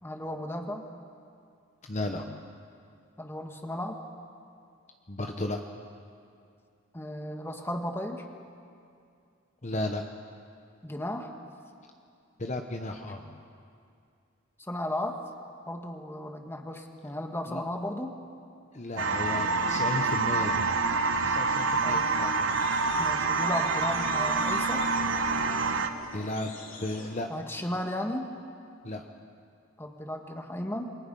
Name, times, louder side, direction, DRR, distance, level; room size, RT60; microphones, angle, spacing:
voice 1, 0.0-0.9 3.2-4.0 6.9-8.2 10.8-11.3 14.6-15.2 15.7-18.1 21.8-22.2 23.0-24.9 27.3-28.3 29.8-30.9, left 1 dB, 10° left, 3 dB, 1.6 m, -35 dB
voice 2, 1.9-2.4 5.1-5.6 9.6-10.0 12.4-13.4 17.5-17.6 18.7-20.8 21.2-22.9 26.1-26.5 26.8-27.3 28.8-29.0, left 1 dB, 35° left, 4 dB, 1.0 m, -34 dB
sound 1, 19.0-25.9, right 4 dB, 70° right, 1.1 m, -27 dB
sound 2, 21.5-27.2, left 4 dB, 70° left, 3.0 m, -47 dB
28.5 x 23.0 x 5.5 m, 2.4 s
head